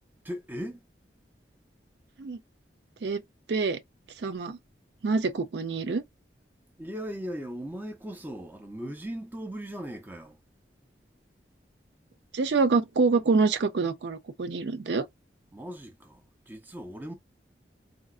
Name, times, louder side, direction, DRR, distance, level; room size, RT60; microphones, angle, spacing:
voice 1, 0.2-0.8 6.8-10.4 15.5-17.1, equal, 10° right, 0.5 m, -38 dB
voice 2, 3.5-3.8 4.2-4.6 5.0-6.0 12.3-15.1, right 4 dB, 70° right, 0.5 m, -26 dB
3.7 x 2.2 x 2.4 m
head